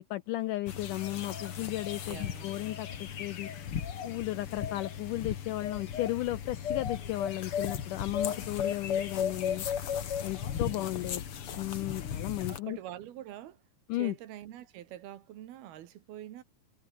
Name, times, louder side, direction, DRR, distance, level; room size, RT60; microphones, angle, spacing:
voice 1, 0.0-3.5 4.0-9.7 10.2-11.2 11.6-12.8 13.9-14.1, left 17 dB, 80° left, 1.9 m, -34 dB
sound 1, 0.7-12.6, left 8 dB, 45° left, 2.1 m, -35 dB
voice 2, 2.1-2.5 10.7-11.2 12.5-13.6 14.0-16.4, right 12 dB, 80° right, 3.5 m, -45 dB
omnidirectional pair, 4.4 m